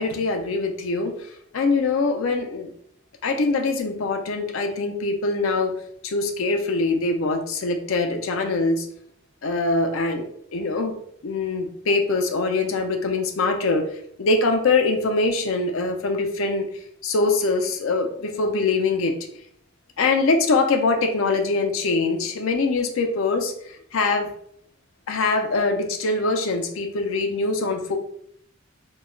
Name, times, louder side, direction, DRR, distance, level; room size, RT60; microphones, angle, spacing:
voice 1, 0.0-2.7 3.2-5.7 6.0-8.9 9.4-11.0 11.2-13.9 14.2-16.7 17.0-19.1 20.0-23.5 23.9-24.3 25.1-28.0, left 3 dB, 80° left, 5 dB, 0.4 m, -23 dB
2.2 x 2.1 x 3.6 m, 0.67 s
head